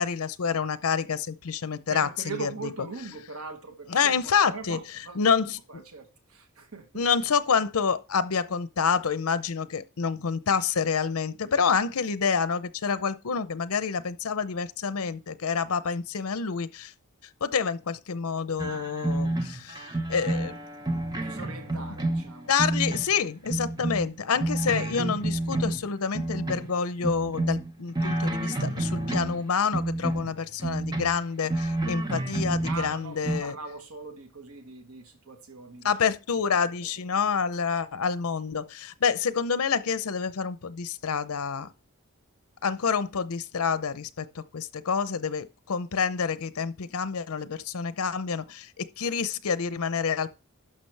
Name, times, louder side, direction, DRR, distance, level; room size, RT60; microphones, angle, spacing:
voice 1, 0.0-2.5 3.9-4.8 5.2-5.6 6.9-16.9 17.4-20.6 20.9-21.0 22.5-33.5 35.8-41.7 42.6-50.3, left 6 dB, 85° left, 0.7 m, -28 dB
voice 2, 1.9-5.3 5.7-7.1 21.2-22.5 32.4-36.0 36.8-36.9 37.2-37.3, right 4 dB, 75° right, 1.2 m, -41 dB
sound 1, 18.6-23.2 23.4-26.7 27.0-29.4 29.7-33.4, right 2 dB, 20° right, 1.0 m, -29 dB
12.0 x 5.8 x 3.3 m
head